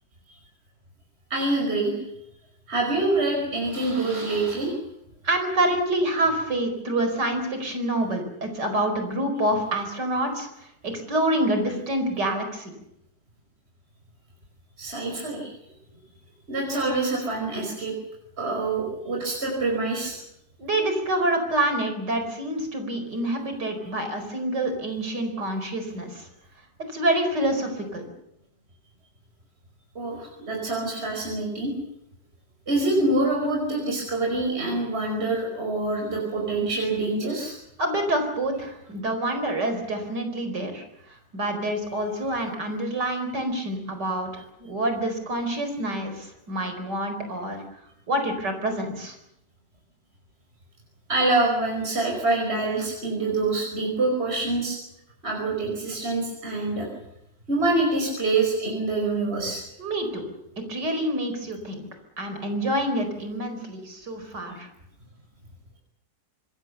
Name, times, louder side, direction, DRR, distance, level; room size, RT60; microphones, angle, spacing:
voice 1, 1.3-1.9 2.7-4.8 14.8-15.5 16.5-17.9 18.4-20.2 30.0-31.7 32.7-37.6 51.1-54.8 55.2-56.9 57.5-59.6, right 2 dB, 35° right, 0 dB, 5.6 m, -25 dB
voice 2, 5.2-10.5 10.8-12.7 20.6-26.3 26.9-28.0 37.8-40.8 41.3-47.6 48.1-49.2 59.8-60.2 60.7-61.8 62.2-64.7, right 1 dB, 70° right, 6 dB, 5.4 m, -27 dB
26.0 x 21.5 x 7.0 m, 0.79 s
omnidirectional pair, 1.9 m